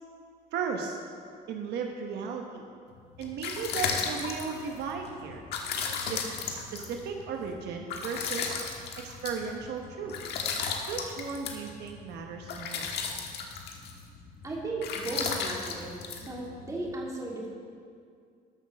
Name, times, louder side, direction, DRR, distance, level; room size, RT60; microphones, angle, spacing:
voice 1, 0.5-1.0 1.5-2.6 3.2-5.4 6.1-8.6 9.0-10.2 10.9-12.9, right 5 dB, 80° right, 2 dB, 1.1 m, -36 dB
sound 1, 3.0-16.9, left 5 dB, 75° left, 1.5 m, -35 dB
voice 2, 14.4-17.5, right 2 dB, 20° right, -3 dB, 2.8 m, -36 dB
13.5 x 6.2 x 6.3 m, 2.2 s
cardioid pair, 110°, 17 cm